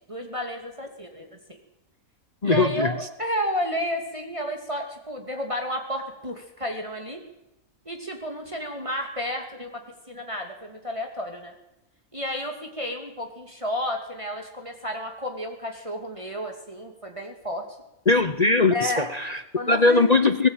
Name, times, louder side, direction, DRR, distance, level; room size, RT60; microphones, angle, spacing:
voice 1, 0.1-1.6 2.4-7.2 7.8-9.8 10.1-11.5 12.1-17.7 18.7-19.1 19.5-20.0, equal, 20° right, 2 dB, 2.7 m, -31 dB
voice 2, 2.4-2.9 18.1-19.4 19.7-20.5, left 3 dB, 30° left, 10 dB, 1.0 m, -20 dB
20.5 x 18.0 x 9.1 m, 0.89 s
omnidirectional pair, 1.5 m